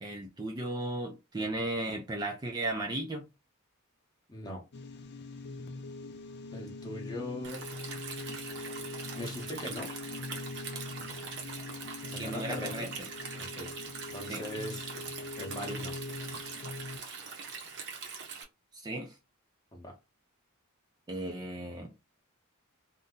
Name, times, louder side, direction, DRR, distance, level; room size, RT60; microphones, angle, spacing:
voice 1, 0.0-3.3 12.2-13.1 14.2-14.4 18.7-19.1 21.1-21.9, right 2 dB, 20° right, 0.4 m, -35 dB
voice 2, 4.3-4.6 6.5-7.7 9.1-9.9 12.1-12.9 13.4-13.7 14.1-14.9 15.4-15.9 19.7-19.9, left 1 dB, 20° left, 0.8 m, -40 dB
sound 1, 4.7-17.0, left 3 dB, 50° left, 0.4 m, -42 dB
Stream, 7.4-18.4, right 5 dB, 55° right, 0.7 m, -42 dB
2.7 x 2.1 x 3.6 m
head